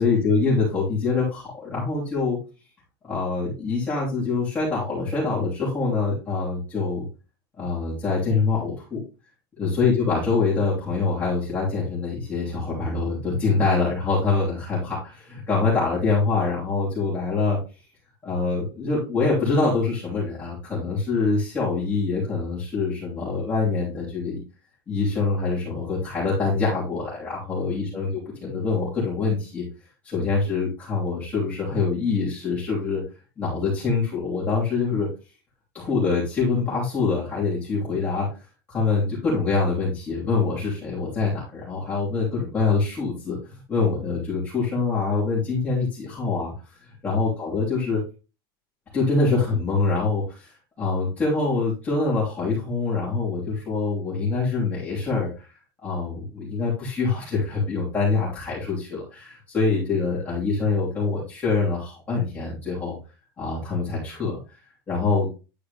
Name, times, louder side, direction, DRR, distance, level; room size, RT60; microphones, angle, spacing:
voice 1, 0.0-2.4 3.0-7.0 7.6-9.0 9.6-17.6 18.2-24.4 24.9-28.1 28.4-29.6 30.0-33.0 33.4-35.1 35.7-38.3 38.7-46.5 46.8-48.0 48.9-55.5 55.8-62.9 63.4-64.4 64.9-65.3, left 4 dB, 15° left, -8 dB, 3.0 m, -25 dB
10.0 x 4.6 x 3.4 m, 0.31 s
supercardioid pair, 175°, 12 cm